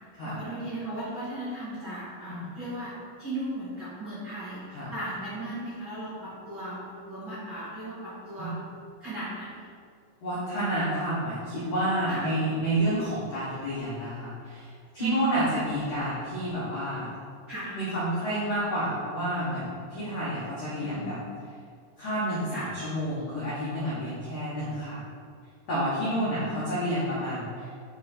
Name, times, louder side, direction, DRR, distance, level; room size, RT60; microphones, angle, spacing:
voice 1, 0.2-2.9 3.2-4.6 4.9-8.6 9.0-9.7 12.1-12.2 15.0-15.6 17.5-17.8 20.8-21.2 22.5-22.7 26.0-26.6, right 2 dB, 55° right, -12 dB, 1.4 m, -36 dB
voice 2, 10.2-17.1 17.7-21.2 22.0-25.0 25.7-27.8, right 1 dB, 80° left, -9 dB, 1.4 m, -30 dB
9.8 x 3.3 x 4.3 m, 2.2 s
omnidirectional pair, 5.1 m